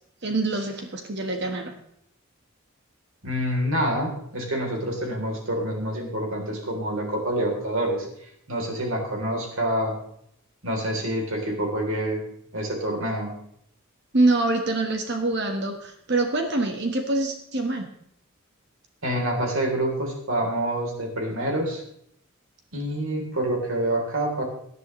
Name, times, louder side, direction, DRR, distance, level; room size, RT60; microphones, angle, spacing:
voice 1, 0.2-1.7 14.1-17.9, right 2 dB, 55° right, 4 dB, 1.4 m, -25 dB
voice 2, 3.2-10.0 10.6-12.2 12.5-13.3 19.0-21.8 22.7-24.4, right 1 dB, 75° right, 1 dB, 3.5 m, -27 dB
17.5 x 11.0 x 3.2 m, 0.71 s
head